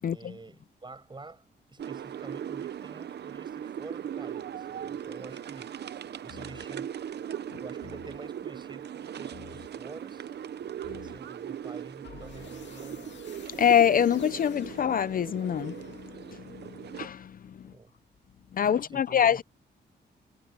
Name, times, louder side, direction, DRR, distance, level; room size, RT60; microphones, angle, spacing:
voice 1, 0.0-5.8 6.2-7.2 7.5-10.3 10.9-13.2 17.6-17.9 18.6-19.4, right 3 dB, 25° right, 6.9 m, -48 dB
sound 1, 1.8-17.1, right 9 dB, 65° right, 0.7 m, -39 dB
sound 2, 6.3-6.9 7.8-8.4 9.3-9.9 10.8-11.4 12.0-16.4, left 8 dB, 80° left, 2.1 m, -50 dB
voice 2, 13.6-16.1 16.4-17.6 18.5-19.4, left 9 dB, 50° left, 0.5 m, -25 dB
wide cardioid pair, 120°, 18 cm